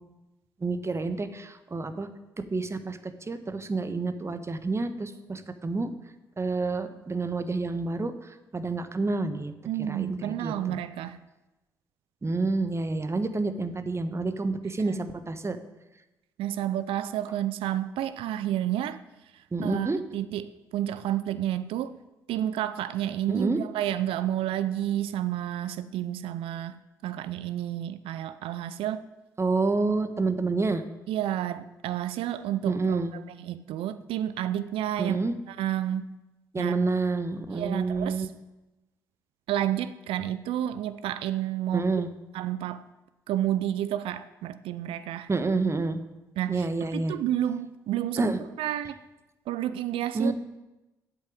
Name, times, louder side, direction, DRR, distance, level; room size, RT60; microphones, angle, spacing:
voice 1, 0.6-2.1 2.5-3.0 3.3-5.9 6.4-9.5 9.8-10.8 12.2-15.6 19.5-20.0 23.3-23.6 29.4-30.8 32.6-33.1 35.0-35.4 36.5-38.3 41.7-42.1 45.3-46.0 46.5-47.1 48.2-48.4 50.1-50.3, right 3 dB, 25° right, 10 dB, 1.3 m, -28 dB
voice 2, 9.7-11.2 14.9-15.0 16.4-19.0 19.6-22.0 22.3-29.1 31.1-35.2 35.5-36.2 36.6-36.8 37.5-38.3 39.5-42.0 42.3-42.8 43.3-45.3 46.4-46.7 46.9-49.0 49.5-50.3, right 12 dB, 65° right, 14 dB, 0.5 m, -30 dB
8.2 x 8.1 x 8.8 m, 1.0 s
figure-of-eight pair, 45°, 10 cm